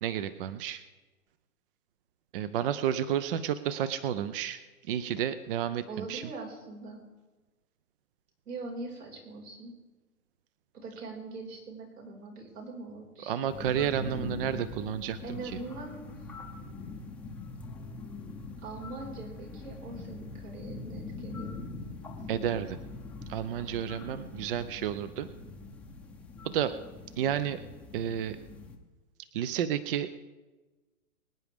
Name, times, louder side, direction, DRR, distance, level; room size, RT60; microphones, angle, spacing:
voice 1, 0.0-0.8 2.3-6.3 13.3-15.6 22.3-22.8 23.3-25.3 26.4-26.7 27.2-27.6 27.9-28.4 29.3-30.1, right 9 dB, 40° right, 14 dB, 0.5 m, -31 dB
voice 2, 5.9-7.0 8.5-9.7 10.7-13.5 15.2-16.0 18.6-21.7, right 3 dB, 80° right, -3 dB, 5.4 m, -42 dB
sound 1, 13.5-28.8, left 3 dB, 5° left, 0.7 m, -43 dB
24.0 x 9.5 x 3.5 m, 1.2 s
hypercardioid pair, 135°, 45 cm